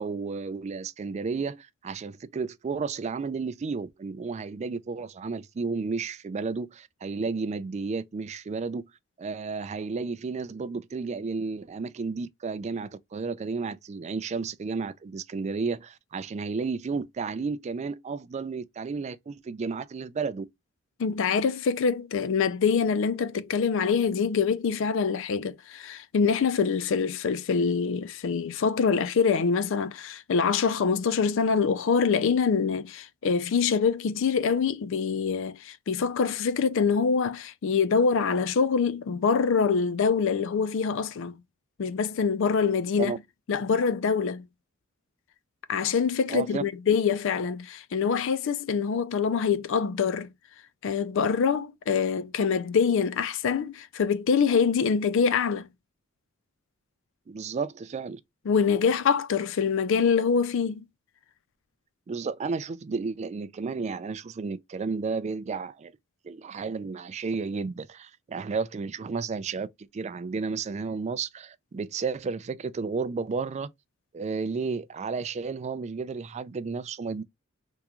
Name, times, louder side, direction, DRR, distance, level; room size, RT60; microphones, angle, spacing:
voice 1, 0.0-8.8 9.2-20.4 43.0-43.2 46.3-46.6 57.3-58.2 62.1-65.9 66.2-69.7 69.9-73.7 74.1-77.2, right 4 dB, 30° right, 0.3 m, -32 dB
voice 2, 21.0-41.4 41.8-43.2 43.5-44.4 45.7-50.3 50.8-55.7 58.5-60.8, left 6 dB, 65° left, 0.4 m, -25 dB
3.5 x 2.9 x 2.2 m
head